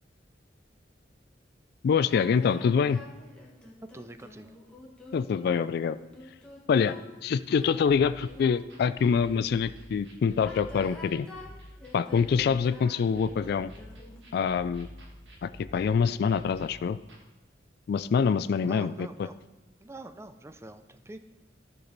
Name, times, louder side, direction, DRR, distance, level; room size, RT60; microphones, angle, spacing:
voice 1, 1.8-3.0 5.1-6.0 6.7-7.0 7.2-11.3 11.9-13.7 14.3-14.9 15.4-17.0 17.9-19.3, left 6 dB, 60° left, 14 dB, 0.3 m, -25 dB
sound 1, 2.1-9.6 10.3-14.3, left 1 dB, 5° left, 1.6 m, -47 dB
voice 2, 3.9-4.5 18.7-19.4 19.8-21.2, right 2 dB, 15° right, 10 dB, 0.5 m, -45 dB
sound 2, 7.9-17.2, equal, 80° right, 1.7 m, -49 dB
14.5 x 6.0 x 4.0 m, 1.1 s
head